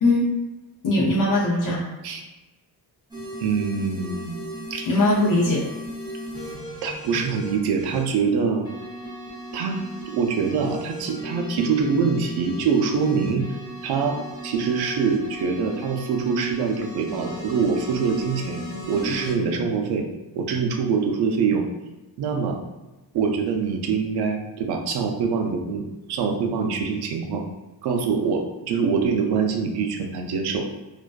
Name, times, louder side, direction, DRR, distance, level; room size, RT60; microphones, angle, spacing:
voice 1, 0.8-1.9 4.9-5.6, left 1 dB, 50° left, -5 dB, 0.6 m, -20 dB
sound 1, 3.1-8.0 8.6-19.3, equal, 10° right, 0.6 m, -36 dB
voice 2, 3.4-4.4 4.7-4.9 6.8-8.7 9.5-9.8 10.1-13.5 13.8-18.6 18.9-20.1 20.4-21.6 22.2-22.6 23.1-27.4 27.8-30.7, right 5 dB, 65° right, 3 dB, 0.5 m, -24 dB
2.4 x 2.2 x 2.3 m, 1.1 s
cardioid pair, 140°, 41 cm